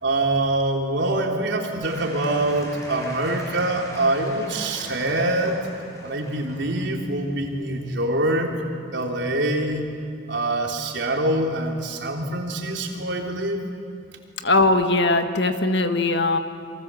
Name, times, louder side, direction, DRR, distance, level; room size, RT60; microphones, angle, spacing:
voice 1, 0.0-5.6 6.0-8.5 8.9-9.9 10.3-13.6, right 1 dB, 75° right, 1 dB, 3.4 m, -24 dB
Applause / Crowd, 1.8-8.1, equal, 20° left, 5.6 m, -41 dB
voice 2, 14.4-16.4, left 2 dB, 65° left, 7 dB, 1.6 m, -20 dB
28.5 x 23.5 x 7.7 m, 2.4 s
head